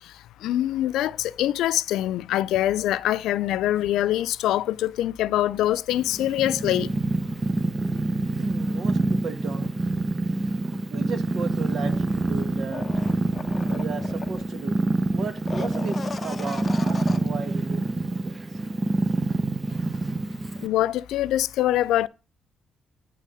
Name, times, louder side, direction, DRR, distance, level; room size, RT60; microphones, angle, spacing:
voice 1, 0.0-6.9 20.6-22.1, left 13 dB, 85° left, 0.3 m, -24 dB
Purr, 5.9-20.7, right 2 dB, 25° right, 0.7 m, -26 dB
voice 2, 8.4-9.7 10.9-12.9 13.7-14.8 15.1-17.9 18.2-18.4, right 5 dB, 55° right, 1.3 m, -35 dB
sound 1, 12.7-14.6 15.3-17.4 17.7-17.8, left 5 dB, 35° left, 0.6 m, -37 dB
9.8 x 3.6 x 5.4 m
cardioid pair, 90°, 0 cm